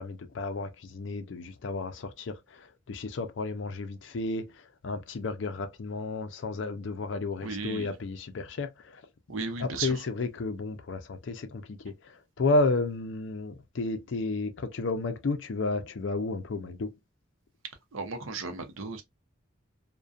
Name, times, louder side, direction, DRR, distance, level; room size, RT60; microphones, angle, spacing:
voice 1, 0.0-9.0 9.6-17.0, left 3 dB, 65° left, 0.4 m, -32 dB
voice 2, 7.4-7.9 9.3-10.0 17.9-19.0, right 4 dB, 85° right, 0.6 m, -35 dB
2.4 x 2.2 x 2.5 m
head